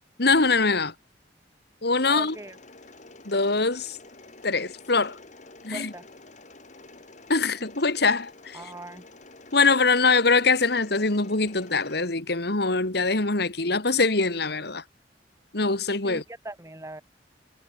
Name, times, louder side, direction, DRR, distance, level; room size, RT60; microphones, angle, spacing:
voice 1, 0.2-0.9 1.8-2.4 3.2-4.0 4.4-5.2 5.6-5.9 7.3-8.6 9.5-14.8 15.5-16.2, left 3 dB, 65° left, 2.7 m, -23 dB
Mechanisms, 1.9-12.1, left 2 dB, 45° left, 6.6 m, -49 dB
voice 2, 2.1-2.6 5.7-6.1 8.5-9.0 16.0-17.0, right 2 dB, 15° right, 5.0 m, -40 dB
head